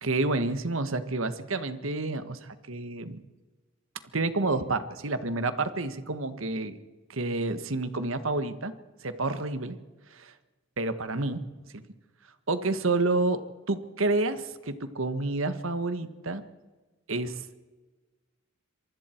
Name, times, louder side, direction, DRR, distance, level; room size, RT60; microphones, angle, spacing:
voice 1, 0.0-3.2 4.1-6.8 7.1-8.7 9.0-9.8 10.1-10.3 10.8-11.4 11.7-11.8 12.5-13.4 13.7-16.4 17.1-17.4, right 2 dB, 70° right, 11 dB, 1.5 m, -29 dB
26.0 x 24.0 x 4.6 m, 1.3 s
head